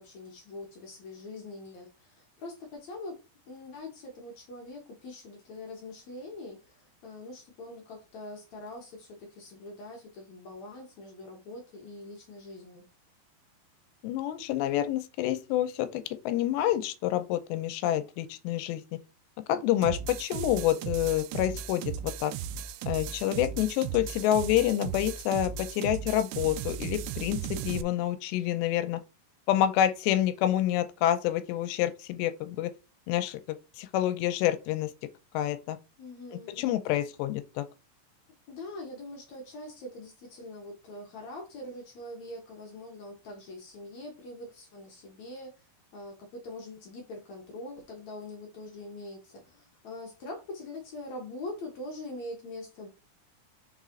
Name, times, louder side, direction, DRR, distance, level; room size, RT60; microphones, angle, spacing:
voice 1, 0.0-3.2 3.5-12.9 36.0-36.6 38.5-45.5 45.9-52.9, left 2 dB, 70° left, 1.7 m, -43 dB
voice 2, 14.0-18.8 19.5-22.3 22.9-29.0 29.5-32.7 33.1-34.9 35.3-35.8 36.6-37.7, left 12 dB, 85° left, 2.8 m, -28 dB
sound 1, 19.8-27.8, right 8 dB, 85° right, 2.7 m, -36 dB
6.1 x 4.1 x 3.7 m
omnidirectional pair, 5.0 m